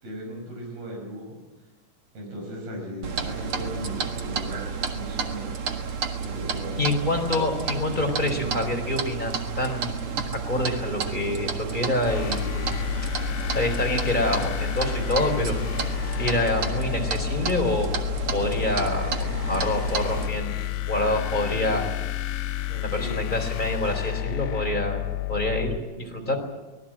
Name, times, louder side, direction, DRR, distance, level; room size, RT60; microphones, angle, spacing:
voice 1, 0.0-1.4 2.2-5.5 6.2-6.8 23.0-23.2, equal, 90° right, 1 dB, 7.2 m, -37 dB
Clock, 3.0-20.3, right 6 dB, 45° right, 2.0 m, -31 dB
voice 2, 6.8-12.6 13.5-15.6 16.2-17.9 18.3-20.6 20.9-21.8 22.7-25.0 25.3-26.4, left 1 dB, 10° left, 3 dB, 4.0 m, -27 dB
sound 1, 12.1-25.8, left 15 dB, 75° left, 1.6 m, -30 dB
24.5 x 19.5 x 7.6 m, 1.2 s
omnidirectional pair, 4.2 m